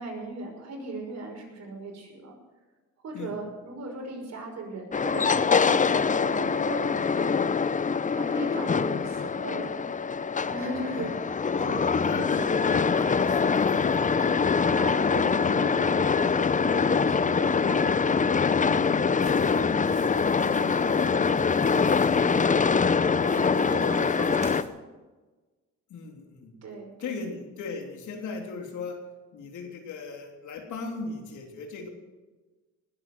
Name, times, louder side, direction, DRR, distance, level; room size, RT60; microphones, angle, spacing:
voice 1, 0.0-2.3 3.0-7.7 8.1-9.8 10.5-11.1 11.6-12.4 14.6-18.8 19.0-22.9 23.2-24.7 26.6-27.1, right 2 dB, 60° right, 1 dB, 5.7 m, -38 dB
sound 1, 4.9-24.6, left 5 dB, 25° left, 0.7 m, -24 dB
voice 2, 12.0-14.4 18.8-19.0 23.4-23.5 25.9-26.5 27.0-29.0 29.3-31.9, left 4 dB, 75° left, 2 dB, 3.4 m, -38 dB
sound 2, 19.2-22.5 23.2-24.7, right 2 dB, 25° right, 3.7 m, -46 dB
19.5 x 8.3 x 7.9 m, 1.2 s
cardioid pair, 90°, 30 cm